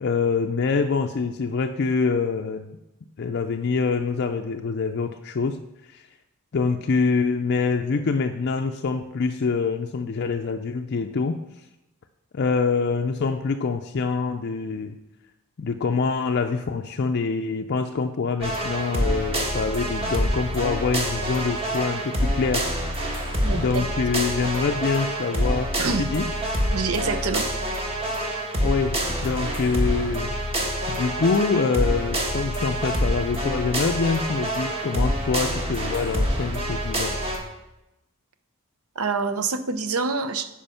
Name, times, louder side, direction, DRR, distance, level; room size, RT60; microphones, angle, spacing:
voice 1, 0.0-2.8 3.2-5.6 5.9-6.1 6.5-11.4 12.3-15.0 15.6-22.7 23.5-26.3 28.6-30.3 30.9-37.2, left 4 dB, 50° left, 5 dB, 0.4 m, -25 dB
sound 1, 18.4-37.4, equal, 25° right, 1.5 m, -26 dB
voice 2, 23.4-23.9 25.8-26.1 26.7-27.5 39.0-40.5, right 4 dB, 70° right, 9 dB, 0.7 m, -26 dB
10.5 x 5.1 x 5.6 m, 0.94 s
head